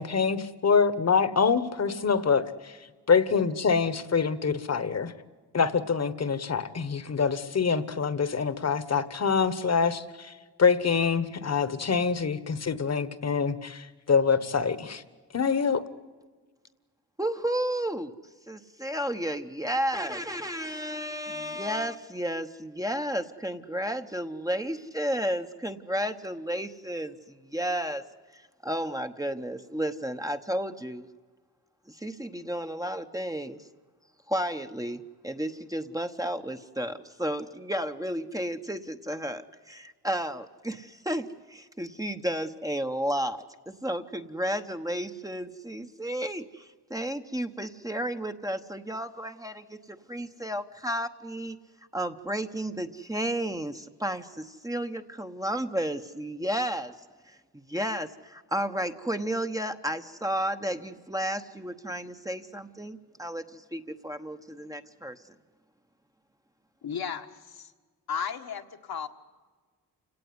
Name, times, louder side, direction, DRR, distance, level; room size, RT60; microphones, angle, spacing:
voice 1, 0.0-2.7 3.1-5.1 5.5-10.3 10.6-15.0 15.3-15.8, left 5 dB, 40° left, 15 dB, 1.4 m, -25 dB
voice 2, 17.2-18.1 18.5-28.0 28.3-31.1 31.9-33.6 34.3-51.6 51.9-56.9 57.3-57.4 57.7-65.2, right 1 dB, 10° right, 6 dB, 1.0 m, -32 dB
voice 3, 66.8-67.7 68.1-69.1, left 7 dB, 70° left, 4 dB, 1.7 m, -34 dB
28.5 x 17.5 x 9.7 m, 1.4 s
wide cardioid pair, 110°, 39 cm